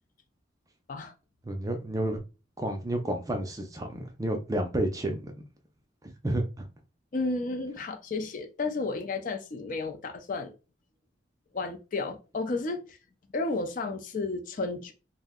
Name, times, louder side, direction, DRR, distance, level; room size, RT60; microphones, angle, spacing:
voice 1, 1.5-2.2 2.6-5.3 6.0-6.7, right 1 dB, 20° right, 0.4 m, -31 dB
voice 2, 7.1-10.5 11.5-13.0 13.3-14.9, left 3 dB, 45° left, 0.4 m, -32 dB
2.5 x 2.1 x 3.6 m
head